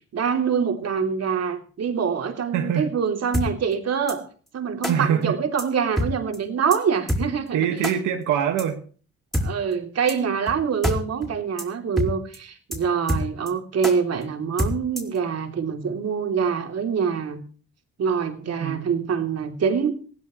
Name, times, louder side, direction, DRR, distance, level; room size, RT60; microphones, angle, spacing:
voice 1, 0.1-4.3 4.5-7.6 9.4-17.4 18.0-19.9, right 6 dB, 55° right, 4 dB, 3.3 m, -25 dB
voice 2, 2.5-2.9 4.9-5.4 7.5-8.8 18.5-18.9, right 9 dB, 85° right, 3 dB, 1.8 m, -24 dB
sound 1, 3.3-3.5 4.1-4.2 4.8-4.9 5.6-5.7 6.0-6.1 6.3-6.4 6.7-6.8 7.1-7.2 7.8-7.9 8.6-8.7 9.3-9.5 10.1-10.2 10.5-10.6 10.8-11.0 11.2-11.3 11.6-11.7 12.0-12.1 12.3-12.4 12.7-12.8 13.1-13.5 13.8-13.9 14.6-15.2, equal, ahead, 4.7 m, -25 dB
20.0 x 15.5 x 3.2 m, 0.41 s
cardioid pair, 90°, 30 cm